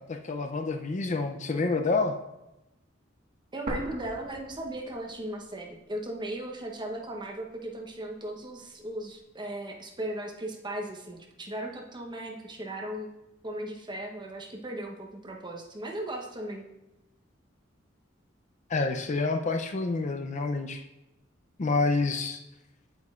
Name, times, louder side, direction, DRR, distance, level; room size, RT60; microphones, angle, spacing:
voice 1, 0.0-2.2 18.7-20.8 21.6-22.4, left 3 dB, 40° left, 6 dB, 0.5 m, -28 dB
voice 2, 3.5-13.1 13.4-16.7, right 1 dB, 25° right, 1 dB, 0.9 m, -37 dB
sound 1, 3.7-5.6 5.9-6.0 6.7-7.7, right 1 dB, 45° right, 1.5 m, -39 dB
8.6 x 8.1 x 2.4 m, 0.94 s
head